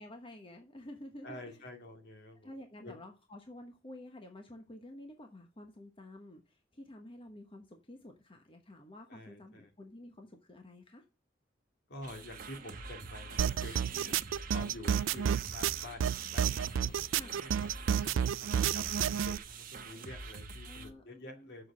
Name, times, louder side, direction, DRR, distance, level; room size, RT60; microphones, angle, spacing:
voice 1, 0.0-1.5 2.4-11.0 13.8-14.2 17.1-17.4 20.6-21.5, left 1 dB, 30° left, 1.1 m, -50 dB
voice 2, 1.2-2.5 2.8-2.9 9.1-9.7 11.9-14.1 14.5-21.7, left 1 dB, 60° left, 2.2 m, -49 dB
sound 1, 12.0-20.9, right 4 dB, 45° right, 1.2 m, -46 dB
sound 2, 13.4-19.4, right 8 dB, 80° right, 0.4 m, -30 dB
7.3 x 6.2 x 6.1 m
head